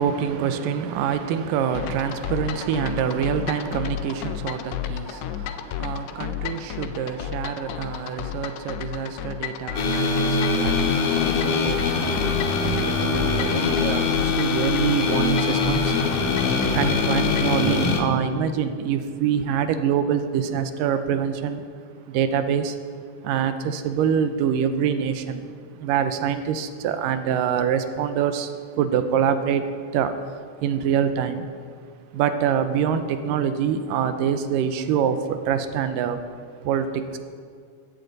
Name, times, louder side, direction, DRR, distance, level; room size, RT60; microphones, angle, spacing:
voice 1, 0.0-12.1 12.6-16.0 16.7-21.7 22.1-22.8 23.2-25.5 25.8-29.7 29.9-30.2 30.6-31.5 32.1-36.2 36.7-37.2, right 8 dB, 90° right, 9 dB, 2.4 m, -25 dB
sound 1, 1.7-17.6, left 11 dB, 90° left, 1.5 m, -33 dB
sound 2, 9.8-18.0, left 4 dB, 70° left, 2.7 m, -23 dB
15.0 x 13.5 x 4.0 m, 2.1 s
omnidirectional pair, 3.9 m